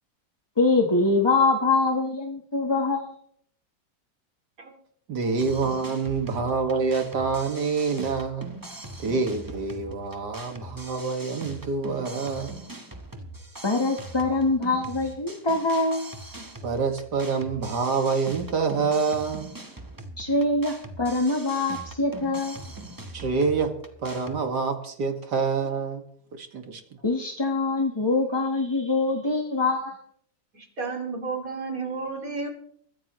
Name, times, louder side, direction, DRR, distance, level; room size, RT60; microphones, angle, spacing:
voice 1, 0.6-3.1 13.6-16.0 20.2-22.6 27.0-30.0, left 3 dB, 15° left, 1.0 m, -24 dB
voice 2, 5.1-8.5 9.0-12.6 16.6-19.5 23.1-23.7 24.0-26.0 26.4-26.8, right 4 dB, 65° right, 2.4 m, -26 dB
sound 1, 5.4-24.4, right 2 dB, 15° right, 1.0 m, -41 dB
voice 3, 30.5-32.5, right 4 dB, 50° right, 2.9 m, -32 dB
21.5 x 14.5 x 3.1 m
omnidirectional pair, 2.0 m